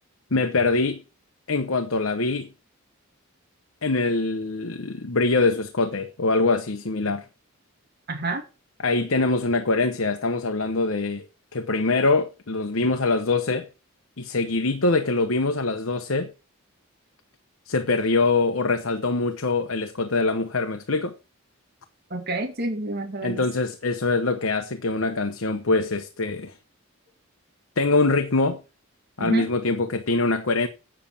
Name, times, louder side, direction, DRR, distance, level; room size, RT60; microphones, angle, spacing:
voice 1, 0.3-1.0 1.5-2.5 3.8-7.3 8.8-11.3 11.5-13.7 14.2-16.3 17.7-21.2 23.2-26.5 27.8-28.6 29.2-30.7, left 3 dB, 65° left, 1.0 m, -23 dB
voice 2, 8.1-8.4 22.1-23.5 29.2-29.5, right 2 dB, 45° right, 2.4 m, -29 dB
8.8 x 7.5 x 6.9 m
head